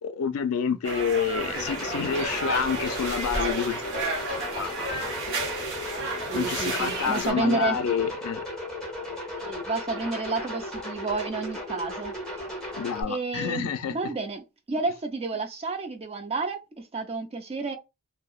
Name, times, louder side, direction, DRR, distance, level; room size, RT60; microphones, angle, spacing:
voice 1, 0.0-4.0 4.6-4.7 5.0-5.5 6.3-8.4 12.7-13.9, left 7 dB, 80° left, 0.3 m, -28 dB
sound 1, 0.8-7.3, right 2 dB, 60° right, 0.8 m, -31 dB
sound 2, 1.5-13.0, left 1 dB, 5° left, 0.9 m, -36 dB
voice 2, 6.3-7.8 9.4-12.4 13.1-17.8, right 3 dB, 30° right, 0.4 m, -30 dB
2.7 x 2.0 x 2.3 m
head